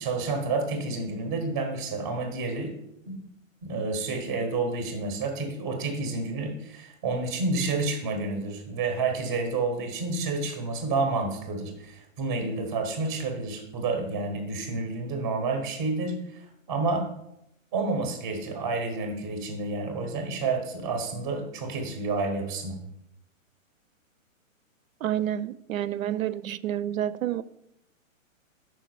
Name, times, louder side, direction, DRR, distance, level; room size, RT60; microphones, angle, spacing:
voice 1, 0.0-2.7 3.0-3.2 3.6-17.1 17.7-22.8, right 3 dB, 10° right, 0.6 m, -29 dB
voice 2, 25.0-27.4, right 11 dB, 80° right, 0.5 m, -29 dB
5.1 x 4.6 x 6.1 m
hypercardioid pair, 160°, 41 cm